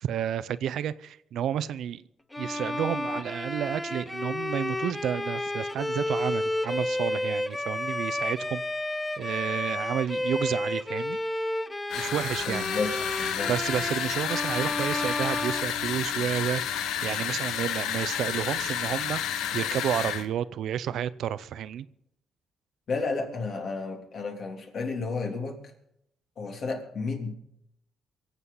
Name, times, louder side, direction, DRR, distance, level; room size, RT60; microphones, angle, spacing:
voice 1, 0.0-2.0 2.4-8.6 9.2-11.2 12.0-12.7 13.5-21.9, right 10 dB, 75° right, 17 dB, 0.6 m, -31 dB
Bowed string instrument, 2.3-16.4, left 1 dB, 10° left, 0.8 m, -31 dB
sound 1, 11.9-20.3, left 10 dB, 90° left, 0.8 m, -31 dB
voice 2, 12.4-13.5 22.9-25.6 26.4-27.3, left 4 dB, 55° left, 2 dB, 3.3 m, -32 dB
23.5 x 8.3 x 5.5 m, 0.78 s
cardioid pair, 90°, 0 cm